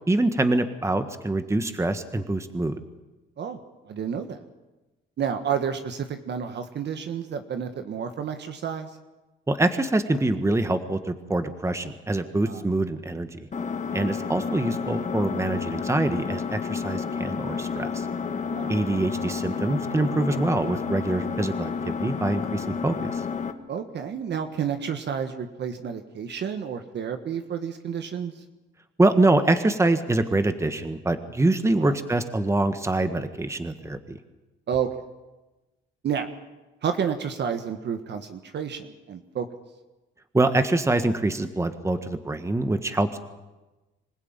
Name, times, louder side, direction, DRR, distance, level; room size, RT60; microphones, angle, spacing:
voice 1, 0.1-2.8 9.5-13.5 13.9-18.1 18.7-23.2 29.0-34.2 40.3-43.2, right 2 dB, 15° right, 8 dB, 1.5 m, -25 dB
voice 2, 3.8-4.4 5.2-8.9 12.4-12.6 18.5-18.8 23.7-28.3 31.8-32.0 34.7-34.9 36.0-36.3 36.8-39.5, right 7 dB, 60° right, 7 dB, 1.6 m, -30 dB
Engine, 13.5-23.5, left 6 dB, 35° left, 1.9 m, -30 dB
26.0 x 16.0 x 9.0 m, 1.1 s
cardioid pair, 90°, 20 cm